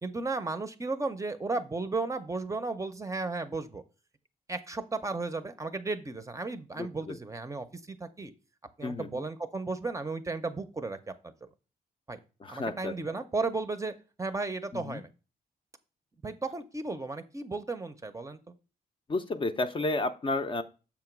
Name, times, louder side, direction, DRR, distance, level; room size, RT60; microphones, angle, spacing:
voice 1, 0.0-3.8 4.5-8.3 8.8-11.1 12.1-12.2 12.5-13.9 14.2-15.1 16.2-18.5, right 3 dB, 20° right, 9 dB, 0.6 m, -34 dB
voice 2, 6.8-7.2 8.8-9.2 12.4-12.9 14.7-15.0 19.1-20.6, left 2 dB, 30° left, 8 dB, 0.5 m, -32 dB
7.1 x 3.0 x 5.9 m, 0.33 s
cardioid pair, 100°, 16 cm